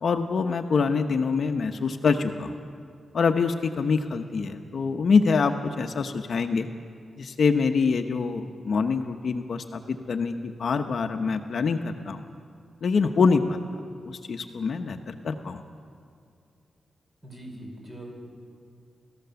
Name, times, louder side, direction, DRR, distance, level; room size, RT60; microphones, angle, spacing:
voice 1, 0.0-2.6 3.1-6.7 7.2-12.2 12.8-13.6 14.0-15.6, left 5 dB, 55° left, 6 dB, 0.8 m, -25 dB
voice 2, 17.2-18.1, right 1 dB, 20° right, 0 dB, 5.3 m, -41 dB
28.5 x 14.5 x 6.9 m, 2.4 s
wide cardioid pair, 160°, 0 cm